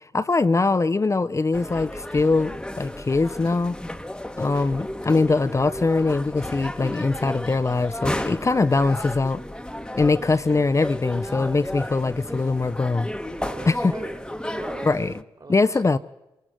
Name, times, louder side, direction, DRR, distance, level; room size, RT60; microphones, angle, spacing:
voice 1, 0.1-3.8 4.4-9.4 10.0-13.1 13.7-13.8 14.8-15.1 15.5-16.0, left 3 dB, 30° left, 0.8 m, -22 dB
sound 1, 1.5-15.2, left 1 dB, 10° left, 1.3 m, -33 dB
voice 2, 10.1-10.8 13.4-16.0, right 3 dB, 45° right, 4.3 m, -41 dB
26.5 x 17.5 x 9.2 m
supercardioid pair, 45°, 10 cm